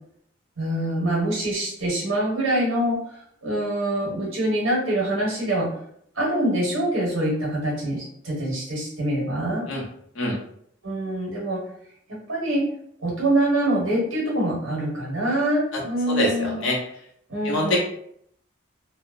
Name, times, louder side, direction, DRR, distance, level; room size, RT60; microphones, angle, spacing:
voice 1, 0.6-3.0 3.4-5.7 6.1-9.6 10.8-11.6 12.3-12.6 13.0-16.7 17.3-17.8, right 1 dB, 75° right, -4 dB, 1.2 m, -24 dB
voice 2, 16.1-16.7 17.4-17.8, left 1 dB, 70° left, -2 dB, 0.8 m, -24 dB
2.7 x 2.0 x 2.5 m, 0.67 s
head